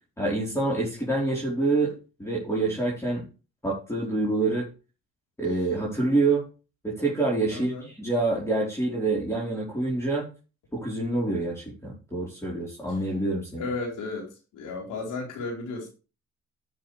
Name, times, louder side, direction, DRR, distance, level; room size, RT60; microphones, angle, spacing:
voice 1, 0.2-3.2 3.6-4.7 5.4-6.4 6.8-10.3 10.7-13.7, right 2 dB, 10° left, -5 dB, 4.4 m, -27 dB
voice 2, 7.5-7.8 13.6-14.3 14.5-15.9, left 3 dB, 90° left, 0 dB, 4.6 m, -33 dB
11.5 x 6.9 x 3.4 m, 0.32 s
cardioid pair, 90°, 30 cm